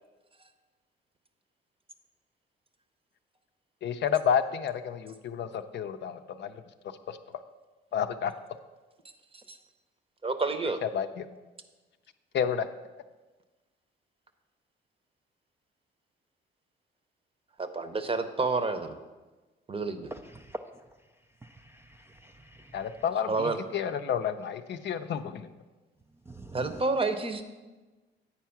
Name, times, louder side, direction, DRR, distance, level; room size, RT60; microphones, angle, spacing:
voice 1, 3.8-6.5 7.1-7.2 7.9-8.3 10.8-11.3 12.3-12.7 22.7-25.5, left 8 dB, 60° left, 8 dB, 0.5 m, -30 dB
voice 2, 10.2-10.8 17.6-18.9 19.7-20.1 23.3-23.6 26.5-27.4, right 3 dB, 30° right, 8 dB, 0.8 m, -29 dB
voice 3, 20.1-20.6 21.4-22.8 26.3-26.8, right 1 dB, 10° right, 4 dB, 0.3 m, -45 dB
8.7 x 4.6 x 5.8 m, 1.2 s
cardioid pair, 90°, 20 cm